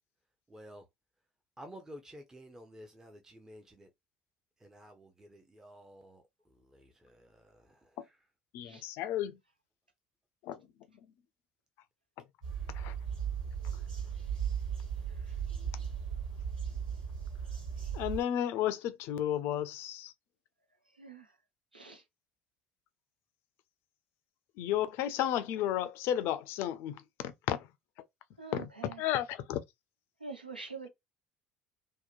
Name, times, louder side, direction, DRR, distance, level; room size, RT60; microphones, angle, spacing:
voice 1, 0.5-0.9 1.6-3.9 4.6-8.2, equal, 10° right, 0.6 m, -52 dB
voice 2, 8.5-9.4 10.4-10.6 12.7-12.9 17.9-20.1 24.6-27.7 28.5-28.7 29.0-29.6, left 11 dB, 55° left, 0.4 m, -33 dB
sound 1, 12.4-18.2, right 7 dB, 75° right, 1.6 m, -36 dB
voice 3, 21.0-21.3 21.7-22.0 28.4-29.0 30.2-30.9, right 4 dB, 90° right, 0.5 m, -45 dB
2.8 x 2.1 x 2.4 m
figure-of-eight pair, 60°, 5 cm